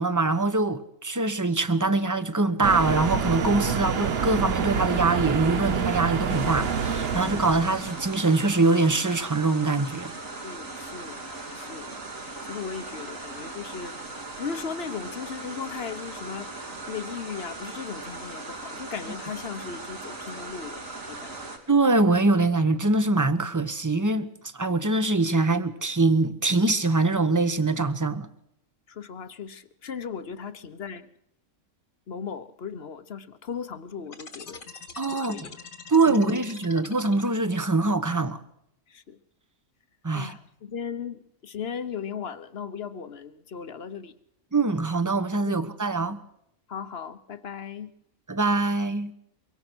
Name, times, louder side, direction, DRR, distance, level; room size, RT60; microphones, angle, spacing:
voice 1, 0.0-10.1 21.7-24.3 24.5-28.3 35.0-35.4 35.9-38.4 40.0-40.3 44.5-46.2 48.3-49.1, right 3 dB, 15° right, 1.0 m, -23 dB
sound 1, 2.6-8.2, right 6 dB, 50° right, 1.1 m, -27 dB
sound 2, 6.3-21.6, right 2 dB, 65° right, 3.8 m, -39 dB
voice 2, 10.4-11.2 11.6-11.9 12.5-14.0 14.4-16.5 16.9-21.5 28.9-31.1 32.1-34.6 35.1-35.6 36.1-36.4 38.9-39.2 40.1-44.1 45.4-45.6 46.7-47.9, left 6 dB, 50° left, 1.2 m, -37 dB
sound 3, 34.1-37.6, left 5 dB, 70° left, 2.4 m, -44 dB
23.5 x 23.5 x 6.3 m
omnidirectional pair, 1.5 m